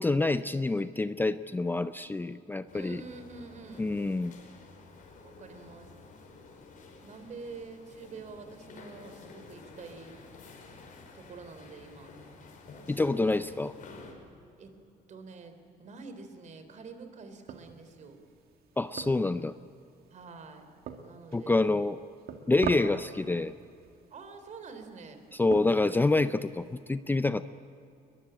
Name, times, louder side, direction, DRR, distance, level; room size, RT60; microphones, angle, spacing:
voice 1, 0.0-3.0 3.8-4.3 12.9-13.7 18.8-19.5 21.3-22.0 22.5-23.5 25.3-27.4, left 2 dB, 10° left, 12 dB, 0.5 m, -27 dB
sound 1, 2.7-14.1, left 3 dB, 55° left, 5.4 m, -51 dB
voice 2, 2.7-3.9 5.2-5.9 7.0-10.2 11.1-12.1 14.6-14.7 15.1-18.2 20.1-20.7 21.0-21.6 24.1-25.2, right 4 dB, 45° right, 8 dB, 3.6 m, -47 dB
sound 2, 17.5-26.8, right 7 dB, 65° right, 2.3 m, -44 dB
22.5 x 22.0 x 8.9 m, 2.7 s
cardioid pair, 110°, 17 cm